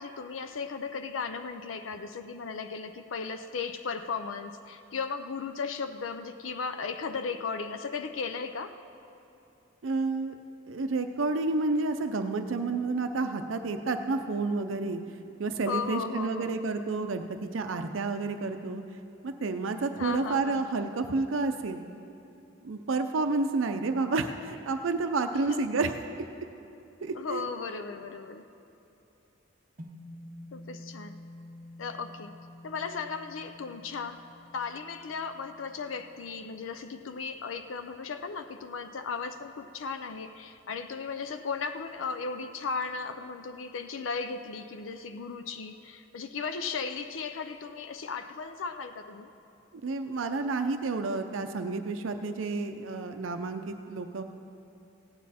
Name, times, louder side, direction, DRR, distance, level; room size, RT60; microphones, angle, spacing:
voice 1, 0.0-8.7 15.7-16.6 20.0-20.6 25.5-25.6 27.2-28.5 30.5-31.2 31.8-32.3 32.6-34.2 34.5-49.3, left 5 dB, 90° left, 8 dB, 0.5 m, -36 dB
voice 2, 9.8-10.3 10.7-18.8 19.2-21.8 22.6-25.9 27.0-27.4 49.7-54.2, right 3 dB, 85° right, 7 dB, 0.5 m, -30 dB
sound 1, 29.8-38.2, left 1 dB, 45° right, 0.8 m, -50 dB
16.5 x 9.5 x 4.2 m, 2.8 s
head